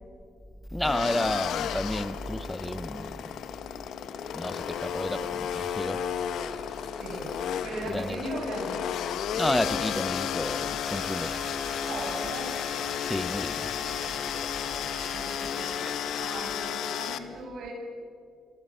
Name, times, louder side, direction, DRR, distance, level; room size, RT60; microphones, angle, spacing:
voice 1, 0.7-3.2 4.3-6.1 7.9-8.2 9.4-11.4 13.1-13.7, left 1 dB, 5° left, 1.0 m, -31 dB
sound 1, 0.8-17.2, left 9 dB, 75° left, 1.5 m, -33 dB
sound 2, 4.5-15.4, left 2 dB, 30° left, 3.6 m, -49 dB
voice 2, 7.0-7.4 7.6-8.8 11.8-12.6 15.1-15.8 16.1-17.7, right 2 dB, 75° right, 7.6 m, -37 dB
sound 3, 10.8-15.9, right 1 dB, 15° right, 5.3 m, -43 dB
27.0 x 24.5 x 7.7 m
cardioid pair, 90°, 0 cm